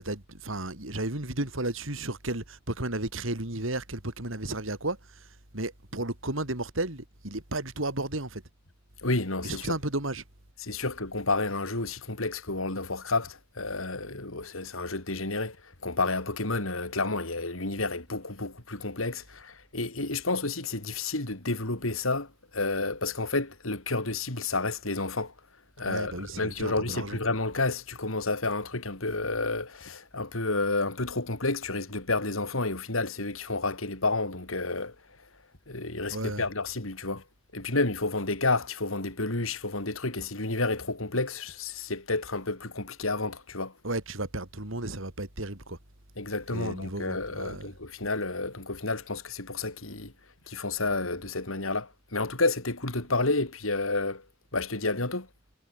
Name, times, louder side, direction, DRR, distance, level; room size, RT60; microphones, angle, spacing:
voice 1, 0.0-5.3 5.5-8.4 9.4-10.2 25.9-27.2 36.1-36.4 43.8-45.8 46.5-47.7, right 2 dB, 75° right, 4.0 m, -33 dB
voice 2, 9.0-9.8 10.6-25.3 25.8-34.9 35.7-37.2 37.5-43.7 46.2-50.1 50.5-54.2 54.5-55.3, left 3 dB, 90° left, 4.0 m, -30 dB
head